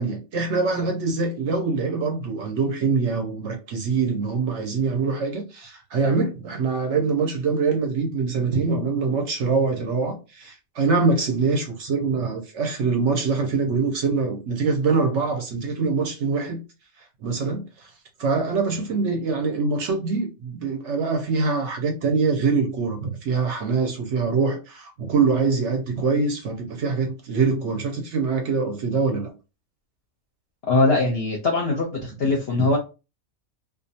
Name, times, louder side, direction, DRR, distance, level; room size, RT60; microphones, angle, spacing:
voice 1, 0.0-16.6 17.2-17.9 18.2-29.3, right 4 dB, 65° right, 0.8 m, -24 dB
voice 2, 30.7-32.8, left 2 dB, 60° left, 0.7 m, -21 dB
2.4 x 2.2 x 2.6 m
omnidirectional pair, 1.5 m